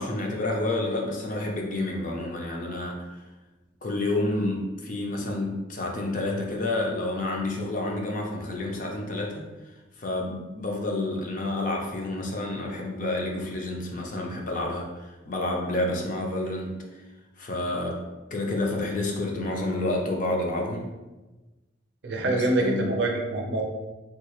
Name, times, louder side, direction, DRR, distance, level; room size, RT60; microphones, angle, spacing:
voice 1, 0.0-3.0 3.8-9.4 10.0-16.8 17.4-18.0 18.3-20.9 22.1-22.9, left 2 dB, 40° left, 0 dB, 0.5 m, -29 dB
voice 2, 22.0-23.6, right 2 dB, 60° right, 1 dB, 0.5 m, -25 dB
3.6 x 2.3 x 2.9 m, 1.1 s
head